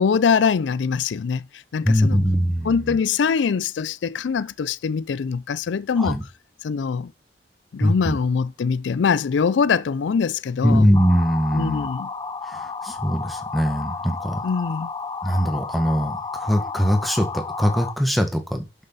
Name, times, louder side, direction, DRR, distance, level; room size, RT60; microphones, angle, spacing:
voice 1, 0.0-1.4 1.7-2.2 2.6-6.2 6.6-7.1 7.7-10.9 11.5-12.1 14.4-14.9, left 6 dB, 90° left, 0.4 m, -23 dB
voice 2, 1.8-3.0 6.0-6.2 7.8-8.2 10.6-11.9 12.4-14.4 15.2-18.7, equal, ahead, 1.7 m, -21 dB
sound 1, 10.9-17.9, left 4 dB, 25° left, 0.6 m, -32 dB
11.0 x 7.0 x 4.1 m
head